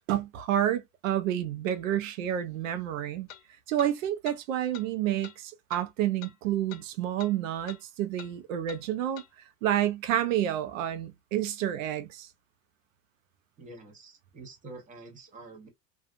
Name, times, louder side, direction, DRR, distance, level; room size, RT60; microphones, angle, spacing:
voice 1, 0.1-3.3 3.7-9.2 9.6-12.3, right 11 dB, 80° right, 0.6 m, -29 dB
sound 1, 1.7-1.8 3.3-3.4 3.8-3.9 4.2-4.4 4.7-4.9 5.2-5.4 5.7-5.8 6.2-6.4 6.7-6.9 7.2-7.3 7.7-7.8 8.2-8.3 8.7-8.8 9.2-9.3, left 11 dB, 85° left, 0.6 m, -46 dB
voice 2, 13.6-15.7, right 2 dB, 20° right, 0.9 m, -47 dB
2.4 x 2.4 x 2.5 m
supercardioid pair, 125°, 39 cm